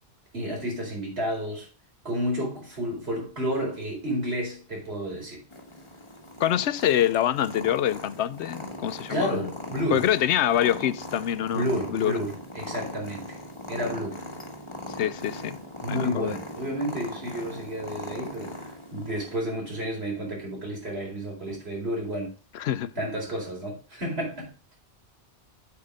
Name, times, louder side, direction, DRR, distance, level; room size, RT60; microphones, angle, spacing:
voice 1, 0.3-1.7 2.0-5.4 9.1-10.1 11.5-13.4 13.7-14.2 15.8-22.3 23.0-24.5, equal, 70° right, 4.7 m, -31 dB
Purr, 5.5-19.4, left 1 dB, 25° left, 1.6 m, -39 dB
voice 2, 6.4-9.5 9.9-11.6 11.9-12.2 14.9-15.6 15.9-16.4 22.5-22.9, left 11 dB, 85° left, 0.9 m, -25 dB
8.4 x 6.1 x 5.0 m
omnidirectional pair, 1.1 m